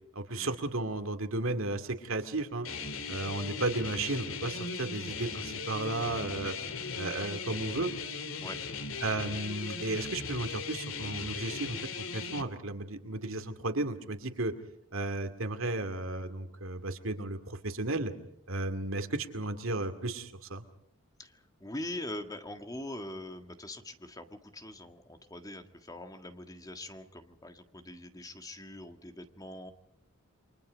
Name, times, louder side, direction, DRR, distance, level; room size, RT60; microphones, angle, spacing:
voice 1, 0.2-2.7 3.1-6.6 6.9-7.9 9.0-11.8 12.1-14.5 14.9-18.1 18.5-20.6, right 2 dB, 70° right, 8 dB, 2.3 m, -34 dB
sound 1, 2.6-12.4, left 5 dB, 70° left, 2.4 m, -38 dB
voice 2, 21.2-29.7, left 1 dB, 15° left, 7 dB, 1.7 m, -43 dB
29.0 x 25.0 x 5.2 m, 0.73 s
head